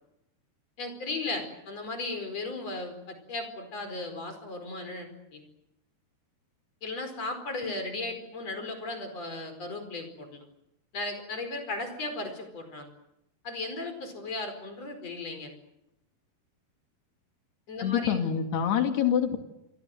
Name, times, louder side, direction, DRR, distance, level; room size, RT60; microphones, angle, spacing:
voice 1, 0.8-5.4 6.8-10.4 10.9-12.9 13.4-15.5 17.7-18.2, left 2 dB, 40° left, 7 dB, 5.7 m, -36 dB
voice 2, 17.8-19.4, left 8 dB, 80° left, 5 dB, 4.6 m, -26 dB
28.5 x 24.5 x 7.9 m, 0.87 s
omnidirectional pair, 4.6 m